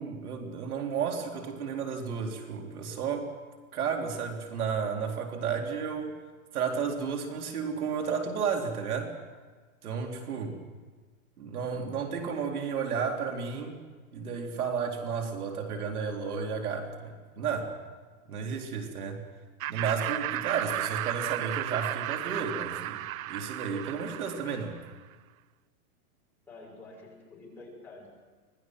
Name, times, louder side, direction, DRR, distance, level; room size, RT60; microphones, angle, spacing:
voice 1, 0.0-3.3 3.7-6.2 6.5-9.2 9.8-10.6 11.4-13.8 14.1-17.7 18.3-19.2 19.7-23.0 23.3-24.8, right 6 dB, 80° right, 2 dB, 3.8 m, -32 dB
Laughter, 19.6-24.9, right 14 dB, 65° right, 0.6 m, -34 dB
voice 2, 26.5-28.2, left 2 dB, 5° left, -6 dB, 6.1 m, -49 dB
25.0 x 19.0 x 6.3 m, 1.4 s
supercardioid pair, 165°, 44 cm